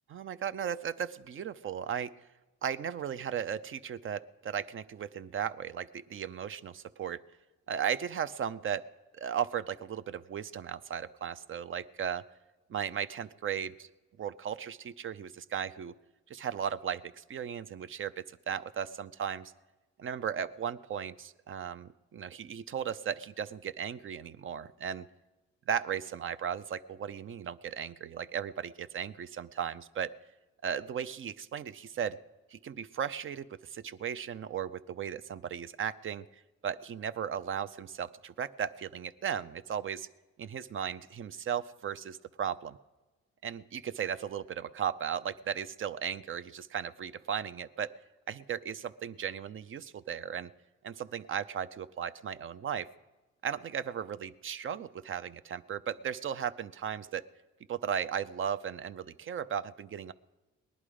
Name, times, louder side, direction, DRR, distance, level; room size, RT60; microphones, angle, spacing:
voice 1, 0.1-2.1 2.6-7.2 7.7-8.8 9.1-12.2 12.7-13.9 14.2-15.9 16.3-19.5 20.0-25.1 25.7-30.1 30.6-32.2 32.5-36.2 36.6-40.1 40.4-42.8 43.4-47.9 48.3-50.5 50.8-52.9 53.4-57.3 57.7-60.1, right 8 dB, 45° right, 14 dB, 0.5 m, -36 dB
19.0 x 11.0 x 5.0 m, 1.2 s
cardioid pair, 90°, 30 cm